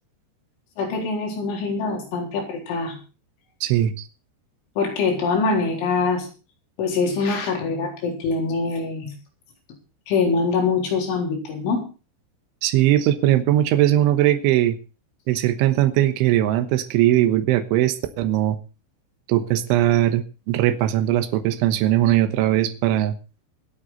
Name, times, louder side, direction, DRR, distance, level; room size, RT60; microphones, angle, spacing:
voice 1, 0.8-3.0 4.8-6.3 6.8-9.1 10.1-11.9, left 4 dB, 75° left, 1 dB, 6.4 m, -24 dB
voice 2, 3.6-4.1 12.6-14.8 15.3-18.6 19.3-23.2, right 13 dB, 80° right, 9 dB, 3.6 m, -20 dB
25.0 x 8.4 x 4.1 m, 0.33 s
omnidirectional pair, 5.5 m